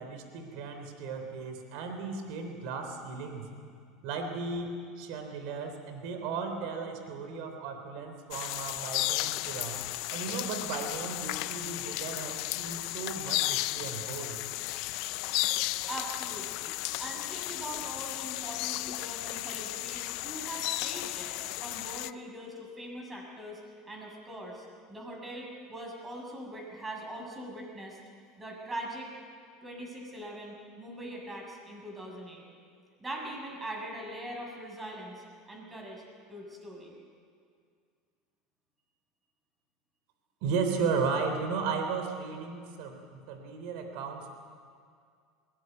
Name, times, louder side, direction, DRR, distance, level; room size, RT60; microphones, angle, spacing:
voice 1, 0.0-3.5 4.0-9.8 10.1-14.4 40.4-44.3, right 5 dB, 70° right, 5 dB, 3.7 m, -35 dB
sound 1, 8.3-22.1, left 19 dB, 65° left, 0.5 m, -34 dB
voice 2, 15.9-16.7 17.0-23.6 23.9-28.0 28.4-29.1 29.6-32.4 33.0-36.0 36.3-36.9, right 1 dB, 15° right, 0 dB, 7.0 m, -42 dB
21.0 x 19.0 x 9.4 m, 2.2 s
supercardioid pair, 110°, 0 cm